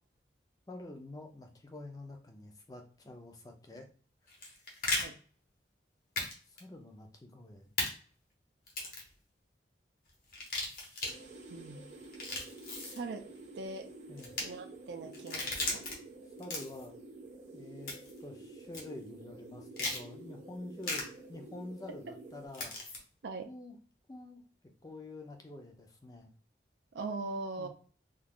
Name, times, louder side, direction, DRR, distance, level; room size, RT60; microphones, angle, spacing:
voice 1, 0.7-3.9 6.5-7.7 14.1-14.4 16.4-16.9 17.5-17.9 18.2-22.7 23.4-23.8 24.1-24.4 24.8-26.3 27.6-27.7, left 2 dB, 20° left, 3 dB, 0.5 m, -47 dB
sound 1, 4.3-5.0 6.2-6.3 6.6-6.7 7.8-7.9 8.7-9.1 10.3-11.1 12.0-13.0 14.2-14.4 15.1-15.9 16.4-16.9 17.9-18.2 18.7-18.8 19.8-20.0 20.8-21.0 22.5-23.0, left 2 dB, 50° left, 0.9 m, -36 dB
sound 2, 11.0-22.5, right 2 dB, 40° right, 0.8 m, -50 dB
voice 2, 11.5-11.9 12.9-13.3 13.6-13.9 14.4-15.8 23.2-23.5 26.9-27.7, right 3 dB, 80° right, 5 dB, 0.4 m, -40 dB
2.4 x 2.3 x 3.5 m, 0.43 s
head